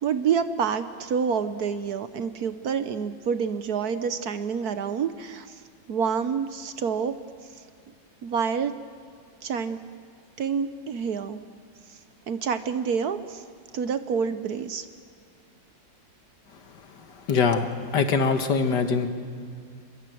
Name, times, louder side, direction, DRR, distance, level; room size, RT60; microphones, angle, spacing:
voice 1, 0.0-5.6 5.9-7.5 8.2-8.8 9.4-9.8 10.4-11.4 11.9-12.0 12.3-13.4 13.7-14.9, right 6 dB, 60° right, 11 dB, 1.3 m, -28 dB
voice 2, 17.3-17.7 17.9-19.1, left 5 dB, 65° left, 8 dB, 2.0 m, -22 dB
26.5 x 22.5 x 7.8 m, 2.2 s
omnidirectional pair, 2.0 m